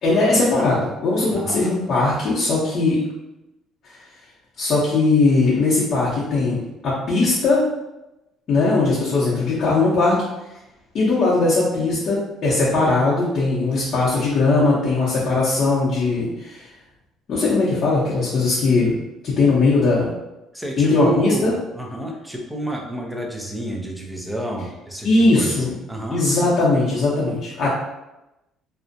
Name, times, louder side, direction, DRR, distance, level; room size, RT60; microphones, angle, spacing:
voice 1, 0.0-3.0 4.6-7.7 8.5-10.2 10.9-16.6 17.3-18.9 19.2-20.1 20.8-21.5 25.0-25.8 26.1-27.7, left 3 dB, 45° left, -8 dB, 0.6 m, -19 dB
voice 2, 1.3-1.7 20.5-26.2, right 1 dB, 5° right, -1 dB, 0.4 m, -30 dB
2.5 x 2.0 x 2.5 m, 0.95 s
cardioid pair, 125°, 0 cm